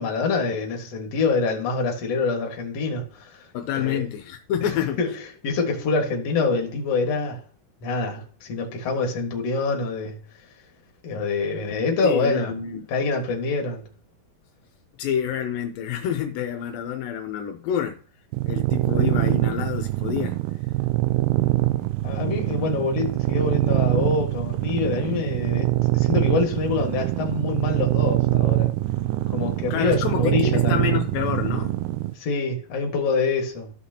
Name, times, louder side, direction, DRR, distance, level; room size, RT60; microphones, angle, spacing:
voice 1, 0.0-3.5 3.7-4.0 4.6-4.7 5.0-7.4 7.8-10.2 11.0-12.5 12.9-13.8 22.0-28.7 29.3-30.9 32.2-33.7, left 4 dB, 50° left, 2.4 m, -25 dB
voice 2, 3.5-5.0 12.0-12.8 15.0-18.0 18.5-20.4 29.7-31.8, left 9 dB, 80° left, 2.5 m, -28 dB
sound 1, 18.3-32.1, right 17 dB, 80° right, 2.1 m, -24 dB
14.5 x 5.8 x 2.9 m
omnidirectional pair, 4.1 m